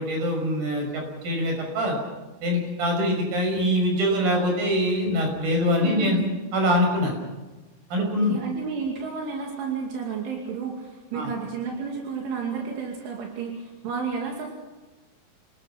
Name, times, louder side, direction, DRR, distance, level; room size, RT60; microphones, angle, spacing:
voice 1, 0.0-2.0 2.4-6.2 6.5-7.2 7.9-8.3 11.1-11.3, equal, 50° right, 2 dB, 7.7 m, -24 dB
voice 2, 5.8-6.2 8.0-14.5, right 5 dB, 80° right, -1 dB, 5.0 m, -31 dB
28.5 x 19.5 x 6.0 m, 1.1 s
omnidirectional pair, 5.5 m